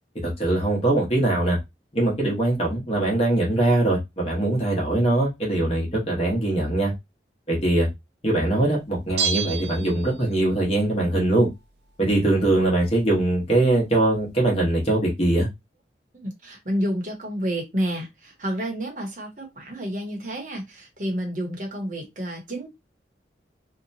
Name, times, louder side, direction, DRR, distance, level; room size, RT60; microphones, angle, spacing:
voice 1, 0.2-1.6 1.9-6.9 7.5-7.9 8.2-11.5 12.0-15.5, right 2 dB, 35° left, 1.1 m, -22 dB
Bell, 9.2-10.6 10.8-10.9, right 6 dB, 75° right, 0.4 m, -29 dB
voice 2, 16.1-22.7, equal, 45° right, 0.9 m, -30 dB
2.8 x 2.2 x 2.6 m
head